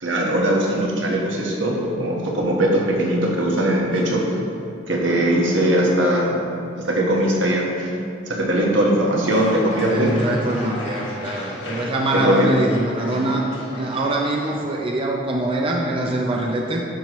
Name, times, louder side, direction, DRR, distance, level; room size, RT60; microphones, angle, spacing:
voice 1, 0.0-4.2 4.9-6.4 6.7-7.9 8.3-10.1 11.6-11.7 12.2-12.5, right 1 dB, 80° right, -2 dB, 1.4 m, -20 dB
sound 1, 9.2-14.6, left 1 dB, 85° left, 1.4 m, -35 dB
voice 2, 9.9-13.5 13.7-16.9, right 1 dB, 30° right, 0 dB, 0.5 m, -23 dB
10.0 x 5.8 x 3.1 m, 2.7 s
head